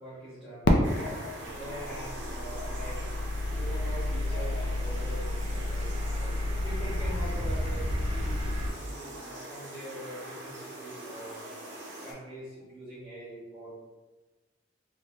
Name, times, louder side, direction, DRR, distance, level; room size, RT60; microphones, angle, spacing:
voice 1, 0.0-11.5 12.0-13.8, right 1 dB, 5° right, -12 dB, 0.9 m, -44 dB
Fireworks, 0.6-3.5, left 1 dB, 75° left, 0.4 m, -29 dB
sound 1, 0.8-12.1, equal, 85° right, 0.8 m, -42 dB
sound 2, 1.5-8.7, left 1 dB, 35° right, 0.5 m, -32 dB
2.6 x 2.1 x 3.3 m, 1.2 s
head